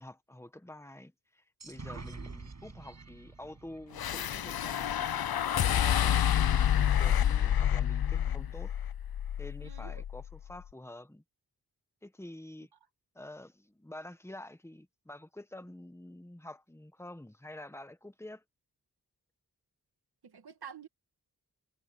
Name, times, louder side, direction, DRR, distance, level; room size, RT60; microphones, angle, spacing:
voice 1, 0.0-8.7 9.4-11.2 12.0-12.7 13.1-18.4, left 1 dB, 5° left, 1.4 m, -48 dB
sound 1, 1.6-5.3, right 3 dB, 45° right, 6.5 m, -48 dB
voice 2, 1.9-2.3 9.6-10.0 20.2-20.9, right 8 dB, 80° right, 2.4 m, -49 dB
sound 2, 4.0-10.3, left 10 dB, 70° left, 0.6 m, -28 dB
wide cardioid pair, 95°, 38 cm